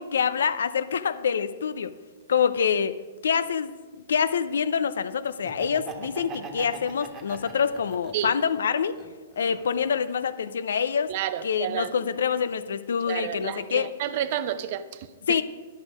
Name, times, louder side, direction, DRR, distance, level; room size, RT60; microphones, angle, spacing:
voice 1, 0.0-1.9 2.3-3.0 3.2-9.0 9.4-11.1 11.4-13.9 15.3-15.4, left 7 dB, 75° left, 14 dB, 0.5 m, -26 dB
Laughter, 5.3-8.5 8.9-10.0, right 5 dB, 25° right, 1.3 m, -41 dB
voice 2, 11.1-11.9 13.1-15.4, right 10 dB, 50° right, 12 dB, 0.6 m, -30 dB
10.5 x 6.4 x 5.0 m, 1.4 s
hypercardioid pair, 125°, 0 cm